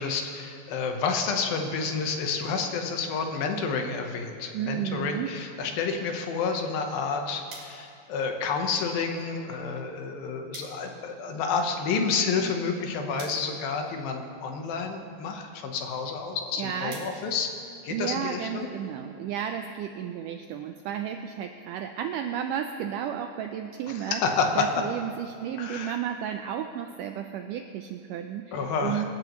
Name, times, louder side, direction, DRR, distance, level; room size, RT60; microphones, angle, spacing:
voice 1, 0.0-17.5 17.8-18.7 23.9-24.6 25.6-25.9 28.5-29.1, left 5 dB, 75° left, 4 dB, 2.8 m, -29 dB
voice 2, 4.5-5.3 16.6-17.1 17.9-24.2 24.6-29.1, right 9 dB, 90° right, 6 dB, 1.8 m, -33 dB
sound 1, 7.5-18.2, right 3 dB, 60° right, 3.9 m, -53 dB
25.0 x 13.0 x 3.1 m, 2.4 s
omnidirectional pair, 4.3 m